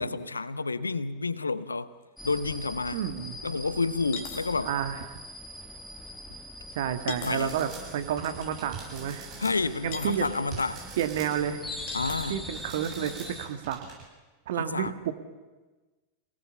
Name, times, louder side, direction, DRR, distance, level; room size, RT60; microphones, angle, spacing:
voice 1, 0.0-1.9 2.2-3.0 3.4-4.7 7.1-7.6 9.4-10.8 11.9-12.4 14.6-14.9, left 3 dB, 80° left, 0.8 m, -30 dB
sound 1, 2.0-2.1 2.6-2.7 4.1-4.5 7.1-7.4 9.9-10.3 11.9-12.3, left 5 dB, 50° left, 2.7 m, -39 dB
sound 2, 2.2-13.5, left 1 dB, 5° left, 1.9 m, -43 dB
voice 2, 2.9-3.4 4.6-5.2 6.8-9.3 9.8-10.3 11.0-11.6 12.3-13.9 14.5-15.1, right 9 dB, 55° right, 1.7 m, -30 dB
sound 3, 7.2-14.0, right 5 dB, 40° right, 7.9 m, -44 dB
27.5 x 18.5 x 7.1 m
figure-of-eight pair, 90°, 0 cm